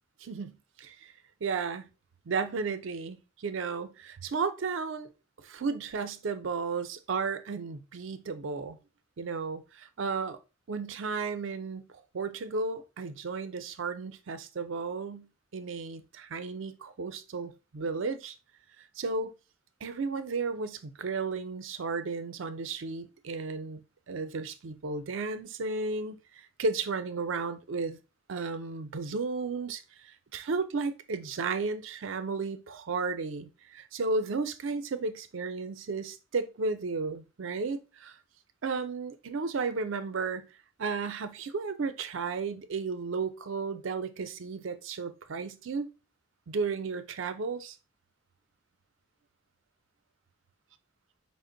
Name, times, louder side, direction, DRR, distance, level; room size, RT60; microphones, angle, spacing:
voice 1, 0.2-1.1 1.4-1.9 2.3-5.1 5.4-8.8 9.2-10.4 10.7-11.9 12.1-18.4 18.8-19.3 19.8-23.8 24.1-28.0 28.3-38.2 38.6-40.4 40.8-45.9 46.5-47.8, right 4 dB, 70° right, 0.5 m, -34 dB
5.0 x 2.0 x 3.8 m
head